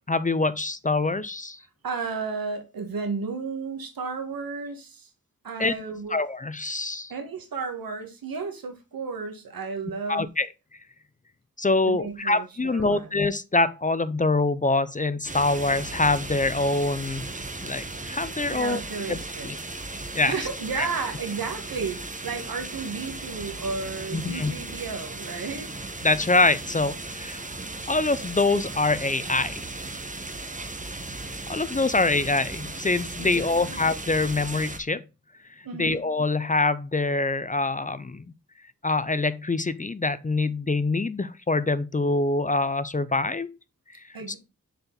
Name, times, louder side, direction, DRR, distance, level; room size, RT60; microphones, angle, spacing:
voice 1, 0.1-1.6 5.6-5.7 6.1-7.1 10.1-10.5 11.6-17.3 17.6-18.8 19.1-19.2 19.4-19.6 20.1-20.4 20.8-20.9 24.1-24.5 26.0-27.6 27.9-29.7 31.5-35.0 35.8-38.3 38.8-43.5 43.9-44.0, left 3 dB, 25° left, 0.5 m, -25 dB
voice 2, 1.8-5.1 5.4-6.2 7.1-10.3 11.8-13.1 18.5-19.5 20.2-25.7 33.2-33.8 35.6-36.0 44.1-44.4, right 4 dB, 85° right, 1.8 m, -33 dB
sound 1, 15.2-34.8, right 2 dB, 20° right, 1.1 m, -36 dB
6.7 x 4.5 x 3.9 m
wide cardioid pair, 70°, 34 cm